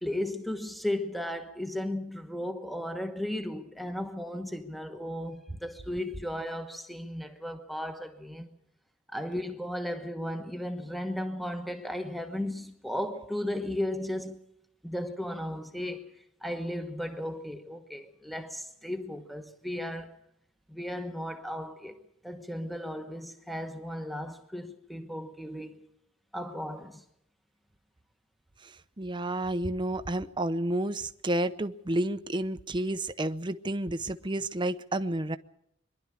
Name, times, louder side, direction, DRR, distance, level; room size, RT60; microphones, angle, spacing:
voice 1, 0.0-8.5 9.1-14.4 14.8-20.2 20.7-22.0 22.2-25.9 26.3-27.0, left 1 dB, ahead, 1.1 m, -35 dB
voice 2, 29.0-35.4, right 1 dB, 20° right, 0.7 m, -30 dB
23.5 x 12.0 x 9.9 m
head